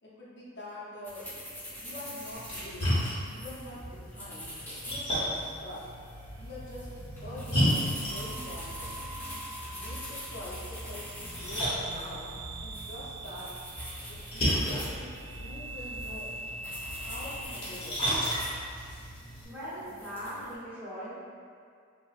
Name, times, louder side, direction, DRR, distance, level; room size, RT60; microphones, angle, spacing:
voice 1, 0.0-1.2 1.7-2.9 3.3-4.5 4.8-5.8 6.4-6.9 7.2-9.2 9.7-12.3 12.6-13.5 14.1-16.4 17.0-18.2, left 1 dB, 55° left, -8 dB, 0.6 m, -45 dB
sound 1, 1.0-20.5, equal, 10° left, 1.3 m, -44 dB
Splash splatter, 2.3-19.4, equal, 25° left, 0.9 m, -34 dB
sound 2, 5.8-17.5, right 2 dB, 65° right, 0.3 m, -44 dB
voice 2, 19.4-21.1, equal, 10° right, -12 dB, 0.8 m, -39 dB
4.2 x 2.0 x 2.4 m, 2.2 s
head